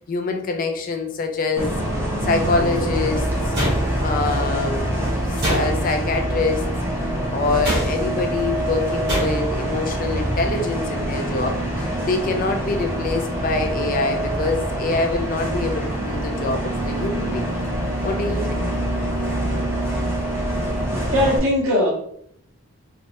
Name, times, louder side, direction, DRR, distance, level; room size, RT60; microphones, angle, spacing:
voice 1, 0.1-1.8 2.2-3.5 4.0-6.6 7.3-11.6 12.0-17.6 18.0-18.7, left 3 dB, 40° left, 5 dB, 0.3 m, -25 dB
Bus, 1.6-21.4, right 1 dB, 10° right, 0.5 m, -25 dB
sound 1, 3.5-4.3 5.4-6.1 7.6-8.2 9.1-9.6, equal, 50° right, 1.4 m, -25 dB
voice 2, 21.1-21.9, left 1 dB, 70° right, -3 dB, 1.0 m, -19 dB
3.3 x 2.0 x 2.9 m, 0.67 s
head